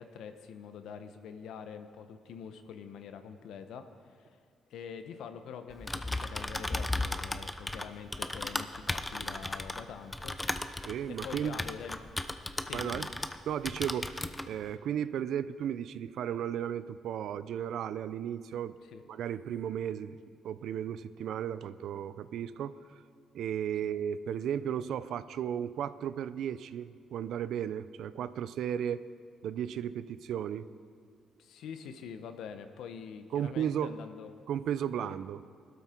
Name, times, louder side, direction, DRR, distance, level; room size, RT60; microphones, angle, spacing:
voice 1, 0.0-4.3 4.7-10.4 10.7-12.0 12.6-13.1 18.8-19.0 23.8-23.9 31.4-34.3 35.0-35.2, left 7 dB, 80° left, 8 dB, 1.0 m, -45 dB
Typing, 5.7-13.4 13.7-14.5, left 2 dB, 15° left, 0.7 m, -36 dB
voice 2, 10.8-11.6 12.7-13.1 13.5-18.8 19.1-20.2 20.4-22.7 23.3-29.0 29.4-30.7 33.3-33.9 34.5-35.4, right 9 dB, 75° right, 15 dB, 0.5 m, -34 dB
19.5 x 12.5 x 4.5 m, 2.2 s
cardioid pair, 90°, 0 cm